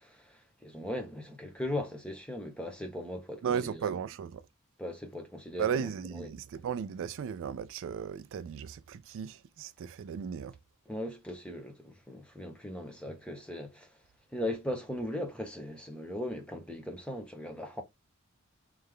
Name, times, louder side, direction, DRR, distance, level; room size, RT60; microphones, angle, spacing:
voice 1, 0.0-3.9 4.8-5.9 6.2-6.3 10.9-13.9 14.3-17.8, left 1 dB, 5° left, 1.0 m, -38 dB
voice 2, 3.4-4.5 5.6-10.6, right 7 dB, 60° right, 0.3 m, -35 dB
3.4 x 3.2 x 3.5 m
head